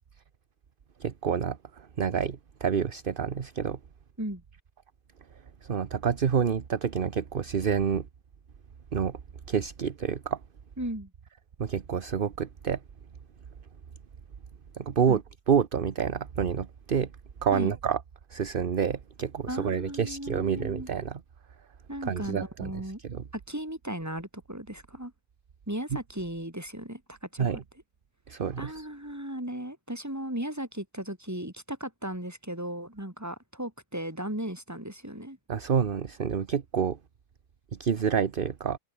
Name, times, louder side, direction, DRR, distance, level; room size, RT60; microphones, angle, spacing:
voice 1, 1.0-3.8 5.6-8.1 8.9-9.2 9.5-10.4 11.6-12.8 14.7-15.2 15.5-17.1 17.4-18.0 18.3-21.2 22.0-22.7 23.1-23.2 27.4-27.6 28.3-28.9 35.5-37.0 37.8-38.8, right 7 dB, 45° right, 1.1 m, -28 dB
voice 2, 10.8-11.1 15.1-15.2 17.5-17.7 19.5-20.9 21.9-23.0 23.3-25.1 25.7-27.6 28.6-35.4, right 1 dB, 10° right, 4.5 m, -36 dB
omnidirectional pair, 1.4 m